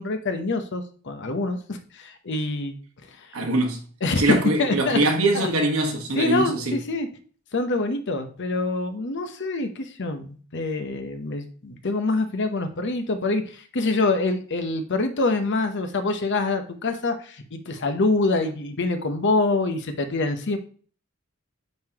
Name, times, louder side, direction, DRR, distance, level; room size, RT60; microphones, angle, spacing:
voice 1, 0.0-2.8 3.2-3.4 4.0-5.0 5.3-5.5 6.1-7.1 7.5-20.6, left 3 dB, 55° left, 0.8 m, -25 dB
voice 2, 3.3-3.8 4.2-6.8, right 2 dB, 75° right, 1.3 m, -23 dB
9.1 x 3.9 x 2.9 m
head